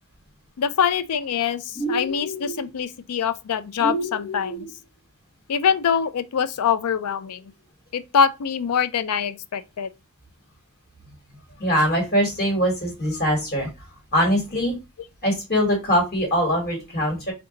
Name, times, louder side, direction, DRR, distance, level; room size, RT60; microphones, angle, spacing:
voice 1, 0.6-4.7 5.5-7.4 7.9-9.9, left 7 dB, 80° left, 0.4 m, -24 dB
sound 1, 1.7-2.7 3.8-4.7, right 1 dB, 25° left, 0.6 m, -29 dB
voice 2, 11.6-13.7 14.1-14.8 15.2-17.3, equal, 45° left, 1.3 m, -22 dB
3.9 x 2.3 x 3.7 m
head